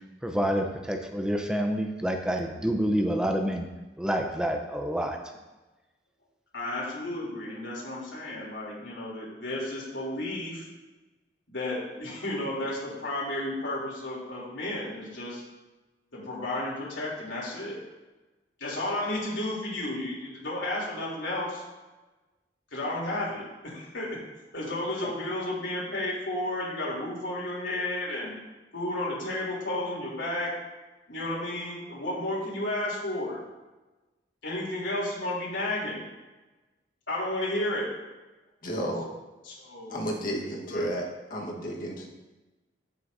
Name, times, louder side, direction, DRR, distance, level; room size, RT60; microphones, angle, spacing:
voice 1, 0.2-3.7 4.0-5.2, equal, 5° right, 3 dB, 0.7 m, -28 dB
voice 2, 6.5-10.6 11.5-15.4 16.1-17.8 18.6-21.6 22.7-24.2 24.5-28.3 28.7-30.5 31.1-33.4 34.4-36.0 37.1-37.9 39.4-40.0 40.7-40.9, left 1 dB, 80° left, -5 dB, 3.3 m, -32 dB
voice 3, 38.6-39.1 39.9-42.1, equal, 50° left, -1 dB, 1.5 m, -32 dB
15.0 x 6.3 x 2.7 m, 1.1 s
head